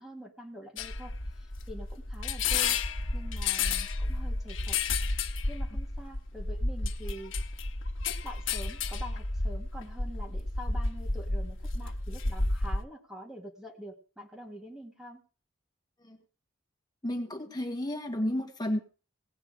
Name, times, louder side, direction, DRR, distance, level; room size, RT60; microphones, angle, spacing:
voice 1, 0.0-2.8 3.1-4.8 5.5-7.3 8.1-15.2, equal, ahead, 1 dB, 2.0 m, -45 dB
sound 1, 0.8-12.8, left 3 dB, 90° left, 1.3 m, -31 dB
voice 2, 17.0-18.8, left 1 dB, 20° left, 4 dB, 2.0 m, -32 dB
18.5 x 8.7 x 4.9 m, 0.36 s
head